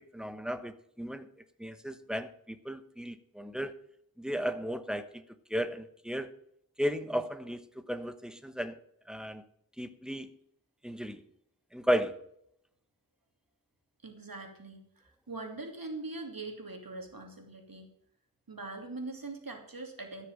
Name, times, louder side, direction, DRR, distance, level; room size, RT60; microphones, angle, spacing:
voice 1, 0.1-1.3 1.6-3.7 4.2-5.2 5.5-6.3 6.8-8.8 9.1-9.4 9.8-10.3 10.8-11.2 11.7-12.2, equal, ahead, 10 dB, 1.2 m, -34 dB
voice 2, 14.0-17.9 18.5-20.3, right 3 dB, 75° right, 3 dB, 2.8 m, -42 dB
13.5 x 6.8 x 7.4 m, 0.70 s
wide cardioid pair, 50°, 35 cm